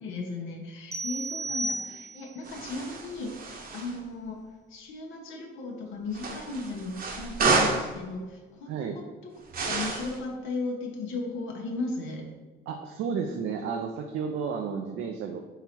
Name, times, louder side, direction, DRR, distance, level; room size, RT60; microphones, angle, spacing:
voice 1, 0.0-4.4 4.7-9.3 9.6-12.3, left 3 dB, 90° left, 1 dB, 0.8 m, -36 dB
sound 1, 0.9-2.4, right 2 dB, 15° right, 0.5 m, -33 dB
sound 2, 2.4-4.0 6.1-7.9 9.5-10.2, right 3 dB, 45° right, 0.8 m, -29 dB
voice 2, 12.7-15.4, right 6 dB, 90° right, 4 dB, 0.4 m, -32 dB
3.9 x 3.0 x 4.1 m, 1.2 s
cardioid pair, 90°, 20 cm